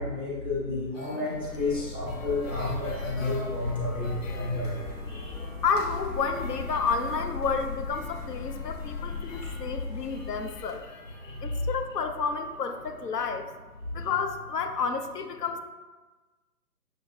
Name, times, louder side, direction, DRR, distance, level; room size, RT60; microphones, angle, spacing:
voice 1, 0.0-4.1 4.3-4.8 5.1-5.4 9.3-9.4 11.2-11.6 14.0-14.1, left 2 dB, 15° left, -10 dB, 0.5 m, -31 dB
sound 1, 0.9-13.3, left 1 dB, 55° left, 0.8 m, -46 dB
sound 2, 1.3-10.7, left 4 dB, 40° left, 1.1 m, -37 dB
voice 2, 5.6-10.8 11.4-13.5 13.9-15.6, left 5 dB, 75° left, 6 dB, 0.5 m, -30 dB
6.6 x 2.5 x 2.3 m, 1.3 s
figure-of-eight pair, 140°, 48 cm